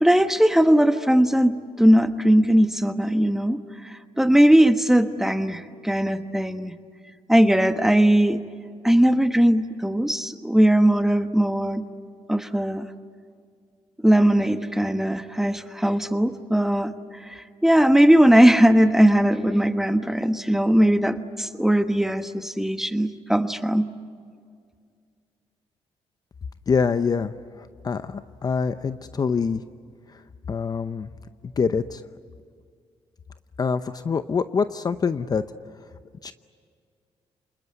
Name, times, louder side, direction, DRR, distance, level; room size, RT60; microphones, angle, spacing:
voice 1, 0.0-6.7 7.3-8.4 8.8-11.8 12.3-12.9 14.0-16.9 17.2-23.9, equal, 5° right, 9 dB, 1.3 m, -19 dB
voice 2, 26.7-29.6 30.1-30.2 30.5-31.1 31.4-32.0 33.6-35.4 36.2-36.3, left 5 dB, 35° left, 11 dB, 0.7 m, -25 dB
27.0 x 20.5 x 9.7 m, 2.2 s
cardioid pair, 90°, 11 cm